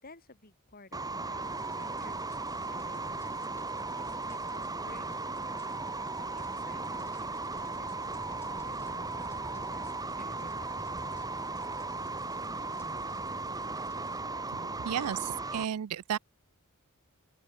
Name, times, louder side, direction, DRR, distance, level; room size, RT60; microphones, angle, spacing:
voice 1, 0.0-3.3 3.9-5.2 6.2-11.2 12.3-12.4, left 2 dB, 40° left, 5.6 m, -55 dB
sound 1, 0.9-15.7, right 3 dB, 15° right, 1.5 m, -36 dB
sound 2, 1.4-14.2, equal, 10° left, 2.5 m, -52 dB
voice 2, 14.8-16.2, right 9 dB, 85° right, 0.4 m, -33 dB
open air
head